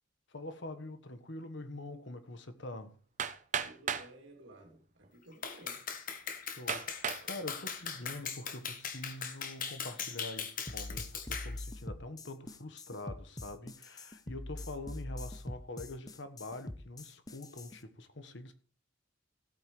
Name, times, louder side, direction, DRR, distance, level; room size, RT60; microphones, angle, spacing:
voice 1, 0.3-3.0 6.4-18.5, left 2 dB, 65° left, 1.4 m, -45 dB
Hammer, 3.2-4.1 5.0-5.1 5.7-5.8 6.7-7.3 7.9-8.3, right 7 dB, 40° right, 0.7 m, -35 dB
voice 2, 3.6-5.9, right 1 dB, 70° right, 2.7 m, -55 dB
Clapping, 5.4-11.5, left 7 dB, 45° left, 1.4 m, -40 dB
sound 1, 10.7-17.8, left 1 dB, 20° left, 0.7 m, -43 dB
16.5 x 8.9 x 3.2 m
head